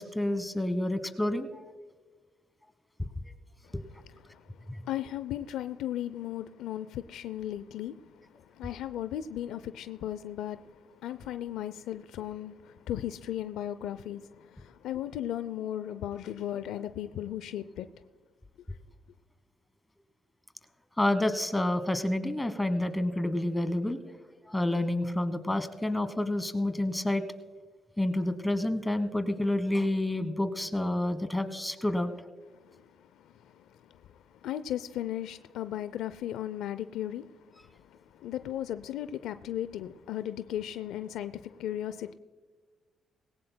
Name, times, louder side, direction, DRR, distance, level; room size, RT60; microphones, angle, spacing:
voice 1, 0.0-1.6 3.7-3.8 4.7-4.8 21.0-24.0 24.5-27.2 28.0-32.1, left 1 dB, 10° left, 1.2 m, -29 dB
voice 2, 3.6-4.4 4.8-17.9 32.5-42.1, left 11 dB, 85° left, 0.5 m, -37 dB
20.0 x 17.5 x 2.2 m
cardioid pair, 90°, 0 cm